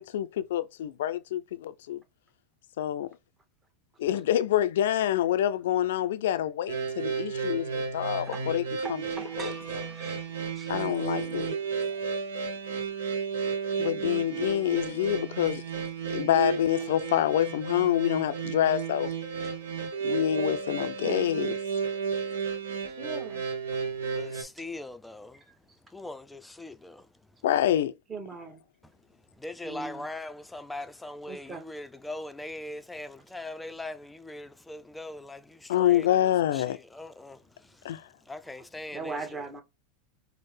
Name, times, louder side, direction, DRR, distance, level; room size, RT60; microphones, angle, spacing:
voice 1, 0.0-2.0 2.8-3.1 4.0-8.6 8.9-9.0 9.4-9.5 10.7-11.5 13.8-15.6 16.1-19.1 20.0-21.5 27.4-27.9 35.7-36.8 37.8-38.1, left 11 dB, 75° left, 0.3 m, -27 dB
sound 1, 6.7-24.4, right 5 dB, 85° right, 0.8 m, -33 dB
voice 2, 8.8-10.8 21.0-21.3 22.9-23.6 25.3-25.8 28.1-28.6 29.6-30.1 31.3-31.7 38.4-38.5 38.9-39.6, right 3 dB, 20° right, 1.1 m, -40 dB
voice 3, 23.9-25.4 25.9-27.3 29.1-39.4, left 2 dB, 5° left, 0.4 m, -41 dB
4.4 x 2.0 x 3.2 m
hypercardioid pair, 110°, 0 cm